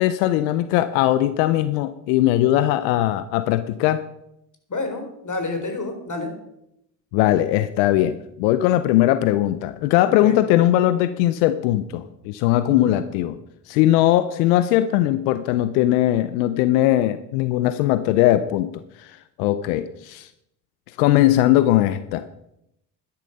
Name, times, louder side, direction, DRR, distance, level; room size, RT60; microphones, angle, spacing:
voice 1, 0.0-4.0 7.1-13.4 13.7-18.7 19.0-19.1 19.4-20.3 21.0-22.3, left 14 dB, 90° left, 13 dB, 0.7 m, -19 dB
voice 2, 4.7-6.3 10.2-10.4 12.7-13.0, left 3 dB, 35° left, 5 dB, 4.2 m, -29 dB
12.5 x 11.0 x 5.4 m, 0.81 s
supercardioid pair, 65°, 49 cm